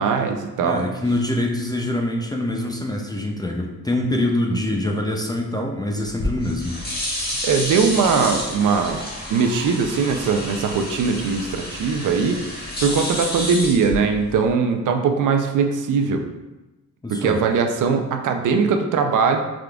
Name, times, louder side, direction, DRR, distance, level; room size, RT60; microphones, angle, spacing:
voice 1, 0.0-0.8 7.4-9.0 9.3-12.4 12.8-16.2 17.1-19.4, right 5 dB, 70° right, 5 dB, 0.5 m, -20 dB
voice 2, 0.6-6.8 17.0-17.4, left 1 dB, 15° left, 1 dB, 0.3 m, -24 dB
sound 1, 6.0-14.5, left 1 dB, 30° left, 1.4 m, -30 dB
4.8 x 3.7 x 2.3 m, 1.1 s
cardioid pair, 125°, 33 cm